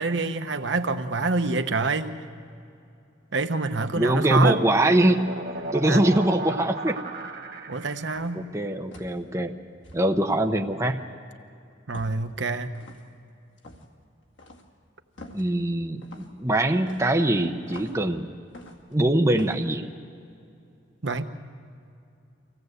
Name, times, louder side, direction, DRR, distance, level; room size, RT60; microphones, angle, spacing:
voice 1, 0.0-2.1 3.3-4.6 5.9-6.1 7.7-8.4 11.9-12.7 21.0-21.2, right 3 dB, 75° right, 8 dB, 1.0 m, -26 dB
sound 1, 3.9-8.3, right 2 dB, 50° right, 1.3 m, -36 dB
voice 2, 4.0-5.2 5.7-7.0 8.3-9.6 9.9-11.1 15.3-18.3 18.9-19.9, right 1 dB, 15° right, 3 dB, 0.8 m, -23 dB
sound 2, 8.1-8.4 8.9-9.2 9.8-10.1 11.9-12.3 12.7-13.1 13.6-13.9 14.4-14.7 15.2-15.5 16.0-16.3 16.9-18.0 18.5-19.0 19.3-19.6, left 2 dB, 85° left, 2.3 m, -46 dB
25.0 x 17.0 x 8.0 m, 2.5 s
head